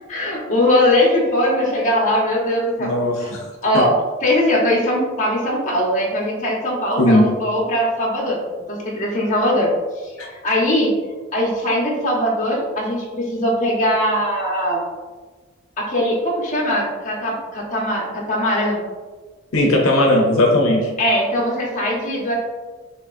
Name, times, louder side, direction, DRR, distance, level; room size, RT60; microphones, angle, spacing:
voice 1, 0.1-2.9 3.2-3.3 3.6-3.9 4.2-8.4 8.7-10.9 11.3-14.8 15.8-18.8 21.0-22.4, left 1 dB, 35° left, -3 dB, 1.1 m, -20 dB
voice 2, 2.8-3.4 7.0-7.3 10.2-10.3 19.5-20.9, left 1 dB, 85° left, 0 dB, 0.7 m, -17 dB
5.7 x 3.2 x 2.6 m, 1.4 s
head